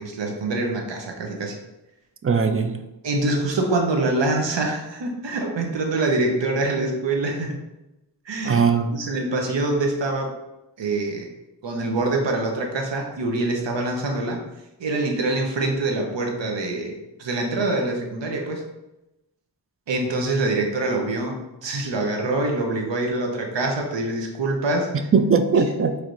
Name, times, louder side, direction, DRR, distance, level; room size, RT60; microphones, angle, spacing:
voice 1, 0.0-1.5 3.0-7.6 8.3-8.6 8.9-10.3 10.8-11.3 11.6-14.4 14.8-16.9 17.2-18.6 19.9-25.1 25.5-25.6, right 2 dB, 85° right, 1 dB, 0.7 m, -25 dB
voice 2, 2.2-2.8 8.4-9.0 25.1-26.0, right 5 dB, 35° right, 7 dB, 0.4 m, -19 dB
4.5 x 3.2 x 2.5 m, 0.94 s
wide cardioid pair, 50°, 43 cm